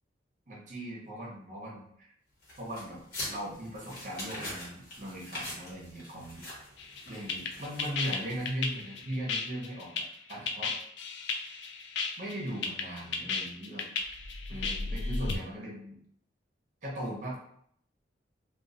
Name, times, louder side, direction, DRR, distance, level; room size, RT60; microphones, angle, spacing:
voice 1, 0.5-1.9 2.6-3.0 3.3-6.5 7.1-10.7 12.2-13.9 14.5-16.0 16.8-17.4, right 1 dB, 40° right, -4 dB, 0.9 m, -39 dB
sound 1, 2.4-8.7, left 1 dB, 50° left, 1.2 m, -43 dB
sound 2, 6.8-15.4, left 4 dB, 75° left, 0.4 m, -34 dB
3.0 x 2.3 x 2.5 m, 0.68 s
head